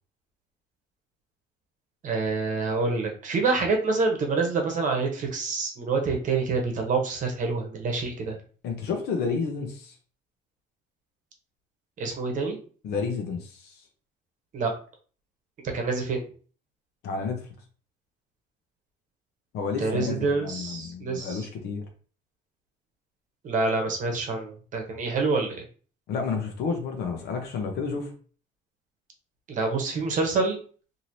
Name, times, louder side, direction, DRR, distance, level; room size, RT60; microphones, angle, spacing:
voice 1, 2.0-8.4 12.0-12.6 14.5-14.7 15.7-16.2 19.8-21.5 23.4-25.6 29.5-30.6, right 3 dB, 50° right, 2 dB, 0.9 m, -27 dB
voice 2, 8.6-9.9 12.8-13.8 17.0-17.5 19.5-21.8 26.1-28.1, left 5 dB, 75° left, 3 dB, 0.7 m, -31 dB
3.0 x 2.8 x 2.7 m, 0.41 s
cardioid pair, 110°, 17 cm